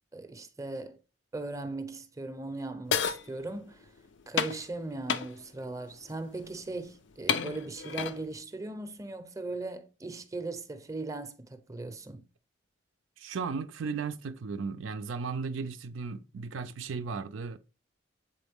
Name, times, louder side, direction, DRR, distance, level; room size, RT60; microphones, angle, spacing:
voice 1, 0.1-1.0 1.3-3.9 4.3-12.3, right 2 dB, 15° right, 0.6 m, -38 dB
sound 1, 2.9-3.2 4.4-4.6 5.1-5.3 6.4-6.6 7.3-8.2, left 7 dB, 70° left, 0.5 m, -29 dB
voice 2, 13.2-17.6, right 5 dB, 85° right, 0.4 m, -35 dB
7.6 x 3.9 x 3.5 m
head